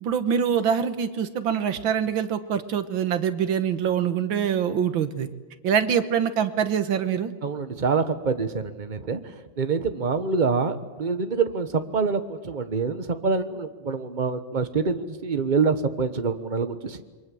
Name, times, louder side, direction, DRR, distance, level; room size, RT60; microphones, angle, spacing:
voice 1, 0.0-5.3 5.6-7.3, right 8 dB, 70° right, 11 dB, 1.9 m, -24 dB
voice 2, 7.4-9.2 9.6-17.0, right 5 dB, 30° right, 9 dB, 1.1 m, -26 dB
28.0 x 23.5 x 7.8 m, 1.3 s
omnidirectional pair, 2.2 m